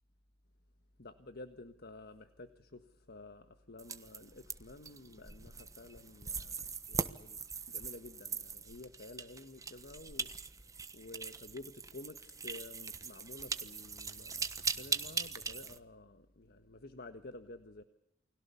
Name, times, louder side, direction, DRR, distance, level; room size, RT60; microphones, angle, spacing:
voice 1, 1.0-7.4 7.7-10.3 10.9-17.8, left 2 dB, 55° left, 9 dB, 1.4 m, -51 dB
sound 1, 3.8-15.8, right 5 dB, 15° right, 1.2 m, -41 dB
29.5 x 21.5 x 7.0 m, 0.79 s
head